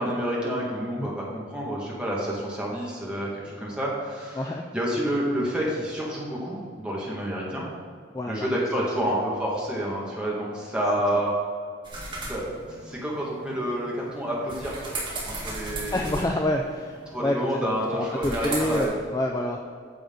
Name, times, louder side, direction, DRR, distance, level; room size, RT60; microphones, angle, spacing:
voice 1, 0.0-7.7 8.3-11.4 12.3-15.0 15.4-16.2 17.1-18.9, equal, 5° right, -6 dB, 1.9 m, -29 dB
voice 2, 8.1-8.5 8.8-8.9 11.1-11.2 15.9-19.6, left 1 dB, 20° left, 3 dB, 0.4 m, -28 dB
sound 1, 11.8-18.8, right 2 dB, 25° right, 2.1 m, -37 dB
9.1 x 6.8 x 3.9 m, 2.1 s
head